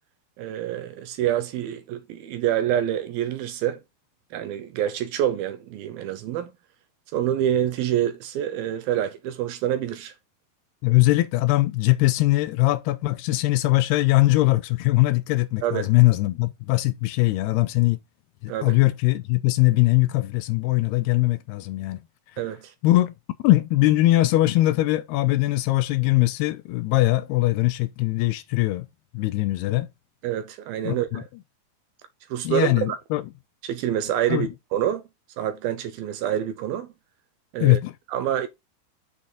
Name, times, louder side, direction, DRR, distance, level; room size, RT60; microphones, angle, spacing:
voice 1, 0.4-3.8 4.3-6.5 7.1-10.1 15.6-15.9 18.5-18.7 22.4-22.7 30.2-31.3 32.3-33.0 33.6-35.0 35.4-36.9 37.5-37.8 38.1-38.5, right 11 dB, 75° right, 2.5 m, -26 dB
voice 2, 10.8-18.0 18.4-22.0 22.8-23.1 23.4-28.9 29.1-29.9 30.8-31.2 32.4-33.2 34.3-34.5 37.6-37.9, left 18 dB, 80° left, 2.6 m, -21 dB
7.2 x 6.4 x 3.9 m
omnidirectional pair, 4.8 m